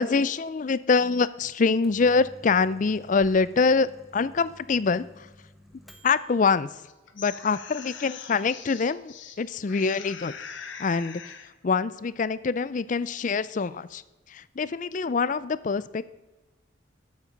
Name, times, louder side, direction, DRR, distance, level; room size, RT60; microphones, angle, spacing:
voice 1, 0.0-5.3 6.0-6.7 7.2-10.3 10.8-11.4 11.6-14.0 14.3-16.0, left 4 dB, 40° left, 17 dB, 0.4 m, -25 dB
Microwave oven, 1.8-6.4, left 1 dB, ahead, 1.0 m, -52 dB
sound 1, 6.9-9.4 9.7-11.5, left 7 dB, 75° left, 1.1 m, -42 dB
12.5 x 7.4 x 5.2 m, 1.1 s
head